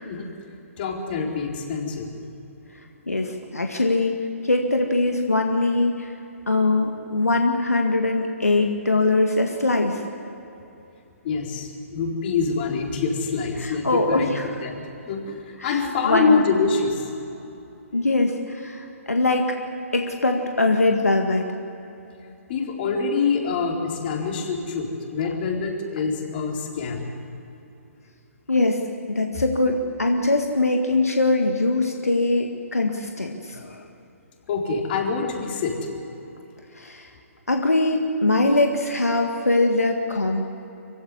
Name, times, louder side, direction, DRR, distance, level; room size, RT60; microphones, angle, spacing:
voice 1, 0.8-2.1 11.2-14.3 14.6-14.8 15.1-17.0 22.5-27.1 34.5-35.9, left 4 dB, 45° left, 0 dB, 4.0 m, -25 dB
voice 2, 3.1-4.1 4.4-6.1 6.5-10.0 13.6-14.5 15.6-16.4 17.9-19.6 19.9-21.5 28.5-28.8 29.1-33.8 36.8-37.1 37.5-40.5, left 2 dB, 90° left, 3 dB, 1.9 m, -22 dB
25.0 x 16.0 x 9.7 m, 2.9 s
figure-of-eight pair, 130°, 8 cm